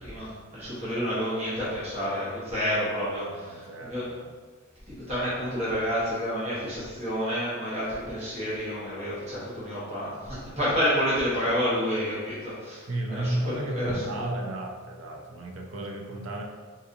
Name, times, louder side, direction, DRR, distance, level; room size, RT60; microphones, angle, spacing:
voice 1, 0.0-4.1 5.1-14.0, equal, 35° right, -9 dB, 1.0 m, -29 dB
voice 2, 3.3-4.3 12.9-16.4, right 1 dB, 70° right, 1 dB, 0.5 m, -33 dB
3.9 x 2.8 x 2.5 m, 1.5 s
head